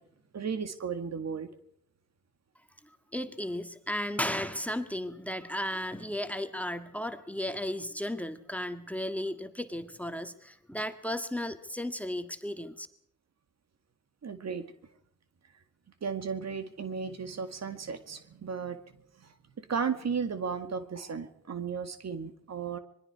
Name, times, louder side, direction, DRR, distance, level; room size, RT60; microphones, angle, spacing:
voice 1, 0.3-1.5 14.2-14.6 16.0-22.8, right 6 dB, 55° right, 10 dB, 1.9 m, -35 dB
voice 2, 3.1-12.9, left 1 dB, 5° left, 8 dB, 1.7 m, -34 dB
25.5 x 21.0 x 4.8 m, 0.68 s
supercardioid pair, 50°, 32 cm